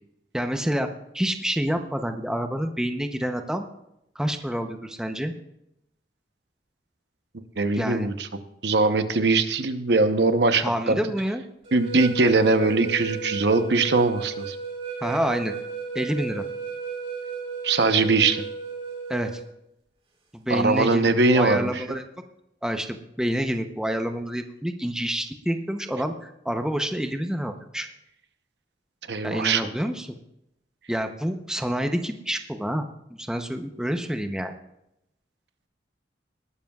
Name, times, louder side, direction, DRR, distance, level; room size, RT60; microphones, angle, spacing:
voice 1, 0.3-0.9 1.1-3.6 4.1-5.3 7.7-8.1 10.6-11.4 15.0-15.5 15.9-16.4 19.1-19.4 20.3-22.0 22.6-27.9 29.2-30.1 30.9-32.8 33.2-34.5, equal, 5° right, 6 dB, 0.7 m, -28 dB
voice 2, 7.6-8.1 8.6-11.0 11.7-14.6 17.6-18.4 20.5-21.8 29.1-29.7, right 3 dB, 65° right, 9 dB, 0.9 m, -21 dB
sound 1, 11.6-19.4, right 5 dB, 35° right, 3.5 m, -34 dB
19.5 x 12.5 x 2.4 m, 0.81 s
head